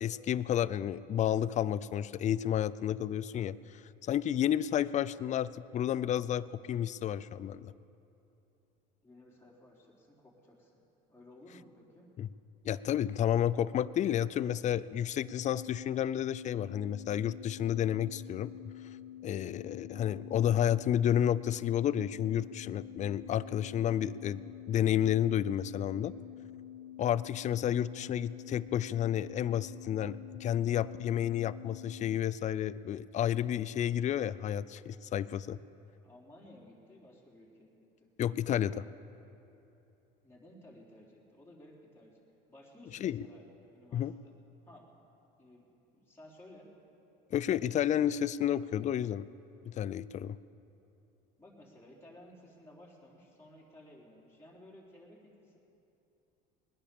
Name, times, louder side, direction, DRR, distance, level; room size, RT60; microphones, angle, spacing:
voice 1, 0.0-7.7 12.2-12.3 12.6-18.5 19.2-24.4 24.7-26.1 27.0-35.6 38.2-38.9 43.0-43.2 43.9-44.1 47.3-49.3 49.7-50.4, left 10 dB, 35° left, 17 dB, 0.4 m, -31 dB
voice 2, 9.0-10.8 11.1-12.1 36.0-38.1 40.2-42.2 42.5-43.4 43.7-44.3 44.7-44.9 45.4-45.7 45.9-46.7 51.4-55.6, left 1 dB, 10° left, -4 dB, 3.8 m, -56 dB
sound 1, 15.3-32.2, left 11 dB, 85° left, 1.1 m, -48 dB
20.0 x 10.0 x 7.0 m, 2.9 s
supercardioid pair, 95°, 21 cm